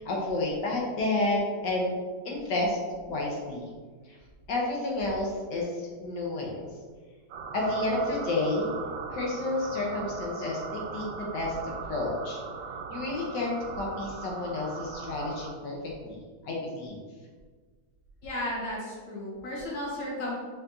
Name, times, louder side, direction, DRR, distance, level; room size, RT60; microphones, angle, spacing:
voice 1, 0.0-1.9 2.2-2.8 3.1-3.7 4.5-6.7 7.5-8.7 9.1-10.6 10.9-11.6 11.9-12.4 12.9-15.7 16.0-16.2 16.4-17.0, left 2 dB, 70° left, -2 dB, 1.4 m, -30 dB
sound 1, 7.3-15.5, right 5 dB, 80° right, 1.2 m, -39 dB
voice 2, 18.2-20.4, left 1 dB, 90° left, -5 dB, 2.1 m, -34 dB
4.4 x 4.0 x 2.6 m, 1.5 s
omnidirectional pair, 2.0 m